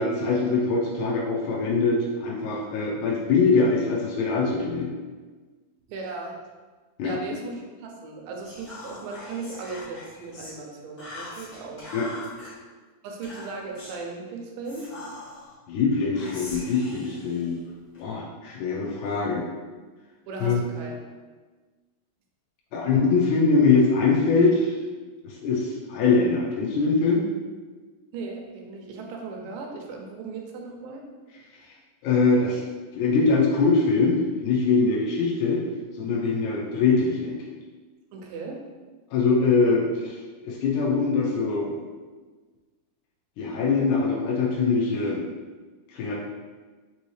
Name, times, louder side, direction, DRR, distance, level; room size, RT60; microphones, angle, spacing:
voice 1, 0.0-4.9 7.0-7.2 11.9-12.1 15.7-17.6 18.0-19.4 20.4-20.6 22.7-24.8 25.2-27.2 31.6-31.7 32.0-32.6 32.9-35.6 36.0-37.4 39.1-41.8 43.4-45.2 45.9-46.2, left 4 dB, 80° left, -3 dB, 1.8 m, -23 dB
voice 2, 5.9-6.4 7.0-11.9 13.0-14.9 20.3-21.0 28.1-31.0 38.1-38.6, right 4 dB, 85° right, 1 dB, 2.2 m, -37 dB
Whispering, 8.4-10.6 11.0-12.5 13.2-14.0 14.6-15.5 16.1-18.0, left 2 dB, 60° left, 1.0 m, -42 dB
5.5 x 2.7 x 3.1 m, 1.4 s
omnidirectional pair, 3.9 m